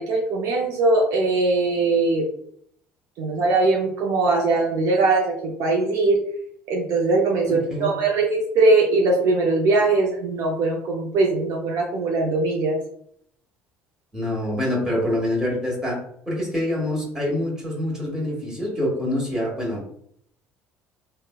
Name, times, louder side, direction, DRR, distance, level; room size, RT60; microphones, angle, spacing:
voice 1, 0.0-2.3 3.2-6.2 6.7-12.8, right 3 dB, 60° right, -1 dB, 0.5 m, -21 dB
voice 2, 7.5-7.9 14.1-16.0 16.3-19.8, left 1 dB, 10° right, -3 dB, 1.2 m, -25 dB
3.0 x 2.1 x 2.2 m, 0.68 s
hypercardioid pair, 60°, 6 cm